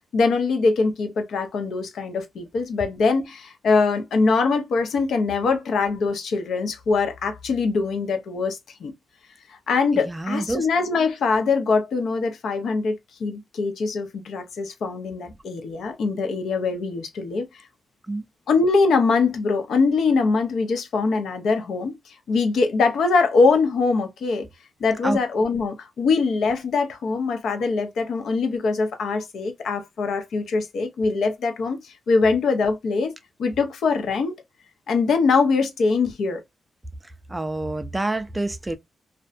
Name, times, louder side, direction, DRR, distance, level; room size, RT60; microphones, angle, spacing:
voice 1, 0.1-8.9 9.5-17.6 18.5-21.9 22.3-24.5 24.8-33.1 33.4-34.4 34.9-36.4, left 4 dB, 70° left, 0.6 m, -23 dB
voice 2, 9.9-10.7 18.1-18.3 25.0-25.2 37.0-38.8, right 2 dB, 10° right, 0.3 m, -28 dB
2.6 x 2.1 x 2.4 m
wide cardioid pair, 170°, 0 cm